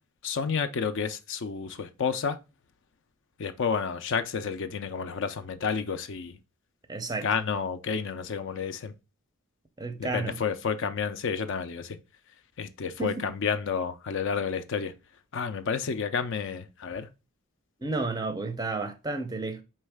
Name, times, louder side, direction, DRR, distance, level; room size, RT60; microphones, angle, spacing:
voice 1, 0.2-2.4 3.4-6.4 7.2-8.9 10.0-12.0 12.6-14.9 15.3-17.1, left 6 dB, 55° left, 0.4 m, -30 dB
voice 2, 6.9-7.3 9.8-10.4 13.0-13.3 17.8-19.6, right 3 dB, 15° right, 0.5 m, -31 dB
4.5 x 3.1 x 3.3 m
head